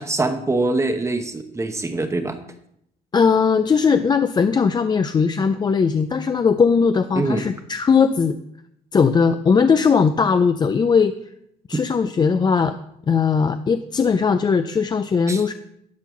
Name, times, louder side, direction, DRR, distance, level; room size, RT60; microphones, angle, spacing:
voice 1, 0.0-2.4 7.1-7.4 15.3-15.4, right 2 dB, 15° right, 7 dB, 0.8 m, -23 dB
voice 2, 3.1-8.4 8.9-11.2 11.7-12.8 13.1-15.5, left 5 dB, 25° left, 10 dB, 0.4 m, -19 dB
11.5 x 4.5 x 5.8 m, 0.74 s
cardioid pair, 110°, 17 cm